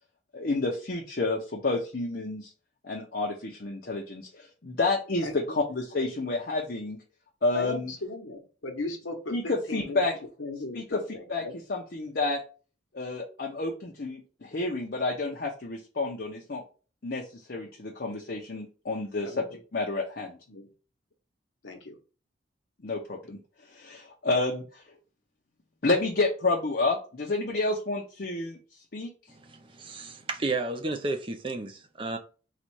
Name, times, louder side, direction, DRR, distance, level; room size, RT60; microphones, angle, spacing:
voice 1, 0.3-2.5 2.8-7.0 7.4-7.9 9.3-10.1 10.7-11.0 11.3-11.4 11.7-12.4 12.9-16.6 17.0-19.4 19.7-20.4 22.8-23.4 23.7-24.8 25.8-28.6 28.9-29.1, left 3 dB, 50° left, 0.7 m, -29 dB
voice 2, 7.5-10.0 10.4-11.5 17.6-17.7 19.2-19.6 20.5-20.7 21.6-22.0, left 2 dB, 85° left, 1.0 m, -37 dB
voice 3, 29.3-32.2, right 3 dB, 25° right, 0.5 m, -32 dB
4.1 x 2.4 x 4.5 m
head